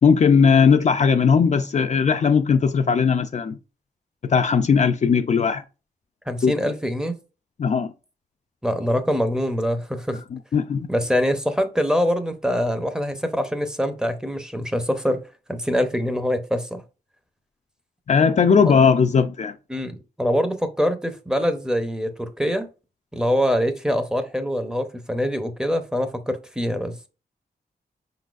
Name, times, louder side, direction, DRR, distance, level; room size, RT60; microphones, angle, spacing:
voice 1, 0.0-3.6 4.2-5.6 6.4-6.5 7.6-7.9 10.3-10.9 18.1-19.5, left 6 dB, 45° left, 0.4 m, -18 dB
voice 2, 6.3-7.1 8.6-10.2 10.9-15.2 15.5-16.8 19.7-22.7 23.1-27.1, equal, 5° right, 0.6 m, -24 dB
5.5 x 3.9 x 2.4 m
wide cardioid pair, 115°, 17 cm